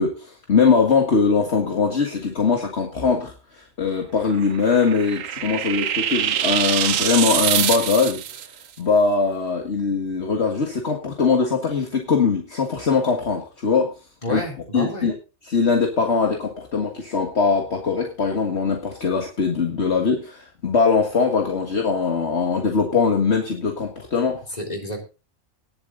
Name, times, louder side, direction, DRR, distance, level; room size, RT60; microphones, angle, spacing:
voice 1, 0.0-8.4 8.8-13.9 14.3-14.4 14.7-15.1 15.4-24.4, left 5 dB, 55° left, 2 dB, 2.0 m, -21 dB
sound 1, 4.3-8.5, right 10 dB, 75° right, 1.1 m, -24 dB
voice 2, 14.2-15.1 24.5-25.0, equal, 30° left, 1 dB, 3.9 m, -29 dB
19.0 x 7.6 x 3.9 m, 0.32 s
omnidirectional pair, 1.4 m